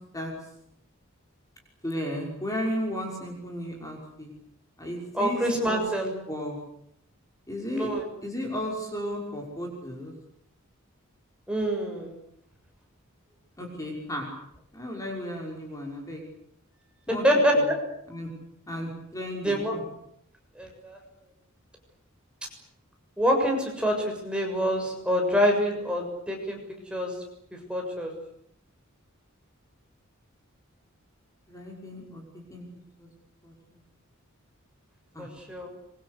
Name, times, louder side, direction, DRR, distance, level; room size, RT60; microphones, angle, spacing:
voice 1, 1.8-4.3 4.8-6.6 7.5-7.9 8.2-10.1 13.6-14.3 14.7-16.2 17.1-17.2 17.5-17.7 18.1-18.3 18.7-19.8 31.5-32.2 32.5-32.7 33.0-33.1 33.4-33.5 35.1-35.3, equal, 15° left, 0 dB, 6.0 m, -34 dB
voice 2, 5.1-6.0 7.7-8.0 11.5-12.1 17.1-17.7 19.4-19.7 20.5-21.0 23.2-26.6 26.9-27.1 27.7-28.1 35.2-35.7, equal, 5° right, 1 dB, 6.9 m, -26 dB
26.0 x 24.5 x 8.4 m, 0.73 s
head